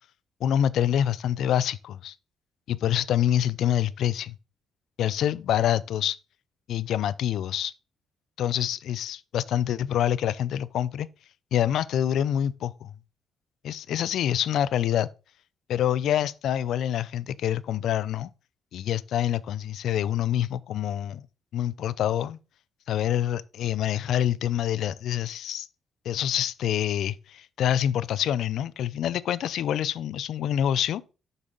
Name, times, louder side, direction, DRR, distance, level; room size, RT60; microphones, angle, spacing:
voice 1, 0.4-2.1 2.7-4.4 5.0-6.2 6.7-7.7 8.4-11.1 11.5-12.9 13.6-15.1 15.7-18.3 18.7-21.3 21.5-22.4 22.9-25.7 26.0-31.1, left 10 dB, 75° left, 0.4 m, -26 dB
8.0 x 6.0 x 3.8 m
cardioid pair, 90°, 0 cm